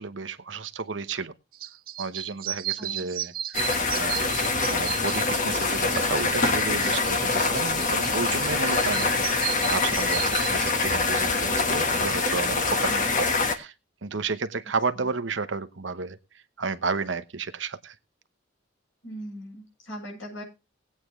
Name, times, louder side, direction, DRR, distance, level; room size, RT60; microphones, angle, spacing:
voice 1, 0.0-1.3 2.0-3.6 3.9-13.7 14.0-16.2 16.6-17.9, right 4 dB, 70° right, 11 dB, 1.0 m, -32 dB
sound 1, 1.5-10.7, right 13 dB, 50° right, 0.6 m, -35 dB
voice 2, 2.8-3.1 8.9-9.1 12.9-13.1 14.9-15.1 19.0-20.4, equal, 80° left, 0 dB, 7.8 m, -40 dB
sound 2, 3.5-13.5, left 3 dB, 45° left, 1.5 m, -25 dB
19.0 x 8.7 x 3.2 m, 0.27 s
head